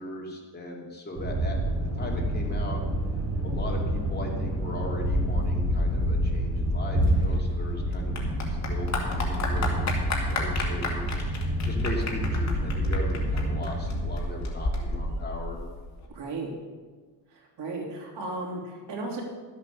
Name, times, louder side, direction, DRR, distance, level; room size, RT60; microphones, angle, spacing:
voice 1, 0.0-2.8 3.4-15.6, left 1 dB, 25° left, -1 dB, 2.6 m, -38 dB
sound 1, 1.2-14.1, equal, 35° right, 3.2 m, -27 dB
Clapping / Applause, 7.1-16.1, left 2 dB, 40° left, 2.6 m, -33 dB
voice 2, 16.1-16.5 17.3-19.2, right 2 dB, 70° right, 0 dB, 3.3 m, -35 dB
13.0 x 8.3 x 6.7 m, 1.4 s
cardioid pair, 120°, 42 cm